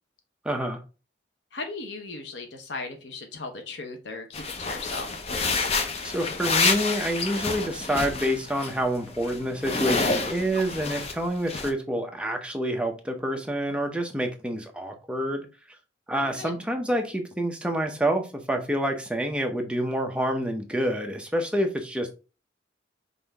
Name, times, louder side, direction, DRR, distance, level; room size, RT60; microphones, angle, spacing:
voice 1, 0.4-0.8 6.0-15.5 16.1-22.1, equal, 5° right, 0.6 m, -28 dB
voice 2, 1.5-5.3 16.2-16.5, left 3 dB, 70° left, 0.8 m, -37 dB
sound 1, 4.3-8.7 9.0-11.2 11.5-11.7, left 4 dB, 35° left, 0.6 m, -28 dB
5.5 x 2.6 x 3.4 m
head